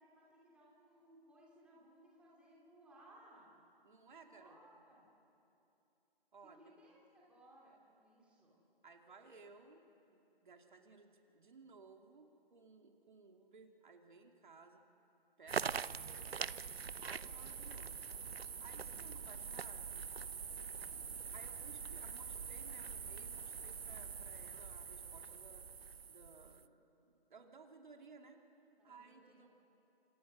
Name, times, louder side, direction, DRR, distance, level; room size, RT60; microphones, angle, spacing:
voice 1, 0.0-3.5 4.2-5.1 6.4-8.6 18.8-19.9 20.9-21.0 28.8-29.5, right 1 dB, 5° right, -5 dB, 2.8 m, -64 dB
voice 2, 3.8-4.8 6.3-6.6 8.8-14.8 15.4-16.6 16.9-18.0 18.6-20.1 21.3-28.4 28.8-29.5, right 4 dB, 55° right, 3 dB, 2.9 m, -59 dB
sound 1, 15.5-26.7, right 6 dB, 85° right, 0.7 m, -44 dB
28.0 x 25.5 x 6.3 m, 2.9 s
figure-of-eight pair, 155°, 30 cm